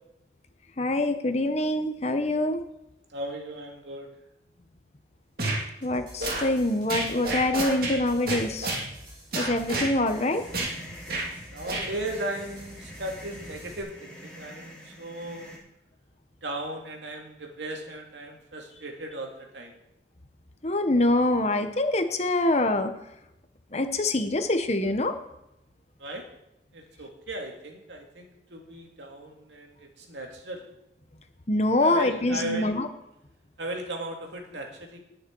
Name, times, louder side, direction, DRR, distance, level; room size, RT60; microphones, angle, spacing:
voice 1, 0.8-2.6 5.8-8.7 9.3-10.4 20.6-22.9 23.7-25.1 31.5-32.9, left 1 dB, 35° left, 8 dB, 1.0 m, -25 dB
voice 2, 3.1-4.1 11.4-15.5 16.4-19.8 26.0-26.2 26.7-30.6 31.8-32.8 33.6-35.0, right 1 dB, 75° right, 1 dB, 2.4 m, -37 dB
sound 1, 5.4-5.6 6.2-6.5 6.9-8.0 8.3-8.8 9.3-9.9 10.5-10.7 11.1-11.3 11.7-11.9, right 2 dB, 55° right, 2.6 m, -29 dB
sound 2, 5.8-13.8, equal, 25° right, 5.8 m, -48 dB
sound 3, 10.1-15.6, equal, 5° left, 3.6 m, -46 dB
19.5 x 6.5 x 4.6 m, 0.88 s
head